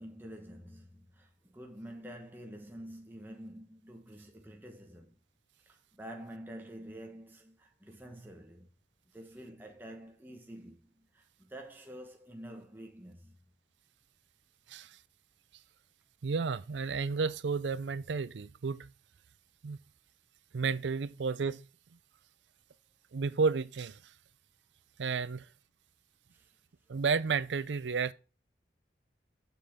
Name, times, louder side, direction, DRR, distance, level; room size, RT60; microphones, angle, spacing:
voice 1, 0.0-5.2 5.6-8.7 9.1-13.4 26.3-26.5, right 1 dB, 10° right, 1.2 m, -48 dB
voice 2, 14.7-15.0 16.2-18.9 19.6-19.8 20.5-21.7 23.1-24.1 25.0-25.5 26.9-28.1, right 5 dB, 85° right, 0.5 m, -32 dB
7.5 x 7.0 x 3.6 m
head